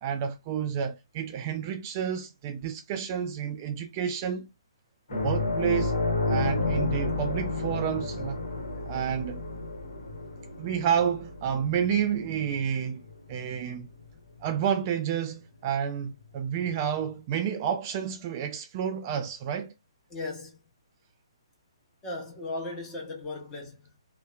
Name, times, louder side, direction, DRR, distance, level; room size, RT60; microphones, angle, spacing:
voice 1, 0.0-4.5 5.1-6.0 6.3-8.4 8.8-9.4 10.6-13.0 13.3-13.9 14.4-19.7, right 8 dB, 30° right, 0.3 m, -30 dB
sound 1, 5.1-14.0 14.4-14.6 16.6-16.7, left 2 dB, 65° left, 1.0 m, -31 dB
voice 2, 20.1-20.6 22.0-24.0, left 2 dB, 20° left, 1.0 m, -37 dB
2.8 x 2.1 x 2.3 m
hypercardioid pair, 140°, 3 cm